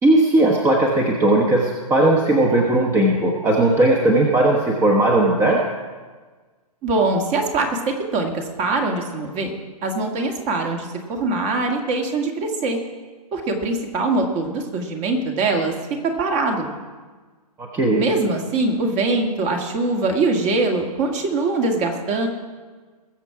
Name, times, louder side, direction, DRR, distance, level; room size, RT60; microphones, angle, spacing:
voice 1, 0.0-5.6 17.6-18.0, right 1 dB, 15° right, 0 dB, 1.1 m, -17 dB
voice 2, 6.8-9.5 9.8-12.8 13.3-15.7 16.0-16.7 17.9-22.3, right 3 dB, 30° right, 3 dB, 1.9 m, -22 dB
20.5 x 7.3 x 4.7 m, 1.4 s
hypercardioid pair, 130°, 20 cm